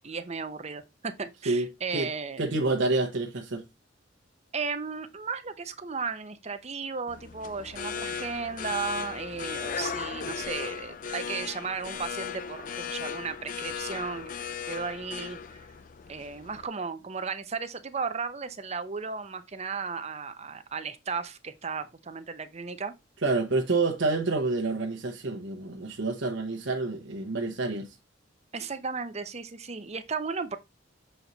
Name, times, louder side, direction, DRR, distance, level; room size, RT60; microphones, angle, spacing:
voice 1, 0.0-2.4 4.5-14.3 14.7-15.6 16.1-22.9 28.5-30.6, right 5 dB, 35° right, 0.7 m, -35 dB
voice 2, 1.5-2.1 2.4-3.6 23.2-27.9, right 3 dB, 70° right, 1.0 m, -28 dB
sound 1, 7.1-16.7, left 6 dB, 45° left, 0.5 m, -37 dB
7.0 x 4.4 x 4.0 m
head